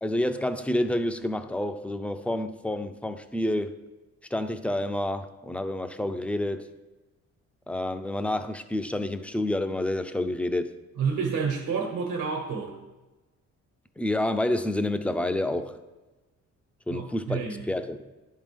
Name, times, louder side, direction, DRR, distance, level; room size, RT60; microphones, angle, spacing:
voice 1, 0.0-3.8 4.3-6.7 7.7-10.7 14.0-15.8 16.9-17.4 17.7-18.1, left 1 dB, 5° left, 0.4 m, -28 dB
voice 2, 11.0-12.7 16.9-17.6, right 5 dB, 80° right, 1.3 m, -29 dB
10.5 x 3.7 x 5.2 m
cardioid pair, 90°, 30 cm